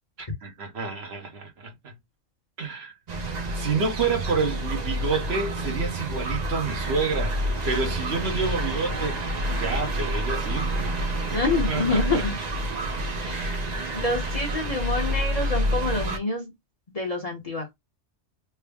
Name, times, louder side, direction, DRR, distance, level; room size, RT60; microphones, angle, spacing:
voice 1, 0.2-1.9 2.6-2.9 3.5-7.4 7.6-9.2 9.6-11.4 11.7-12.2 13.5-13.7, right 4 dB, 60° right, 1.1 m, -29 dB
sound 1, 3.1-16.2, right 1 dB, 45° right, 0.7 m, -28 dB
voice 2, 11.3-12.3 13.1-13.6 13.9-16.5 16.9-17.7, left 2 dB, 35° left, 0.9 m, -27 dB
3.4 x 2.1 x 3.4 m
omnidirectional pair, 1.2 m